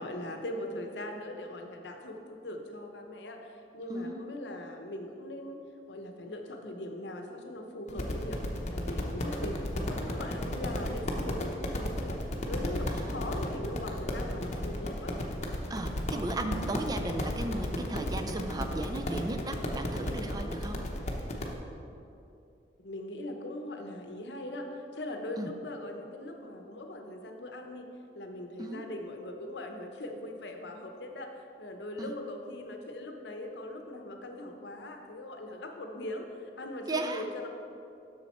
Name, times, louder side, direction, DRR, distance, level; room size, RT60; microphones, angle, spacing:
voice 1, 0.0-5.6 5.9-8.4 8.7-15.2 22.8-27.9 28.1-37.5, left 1 dB, 70° left, 4 dB, 0.8 m, -40 dB
voice 2, 3.9-4.3 15.7-20.8 25.4-25.5 28.6-28.8 32.0-32.1 36.9-37.2, right 2 dB, 20° right, 6 dB, 0.4 m, -35 dB
sound 1, 7.9-21.5, left 1 dB, 40° left, 0.7 m, -34 dB
7.2 x 6.3 x 4.3 m, 2.6 s
head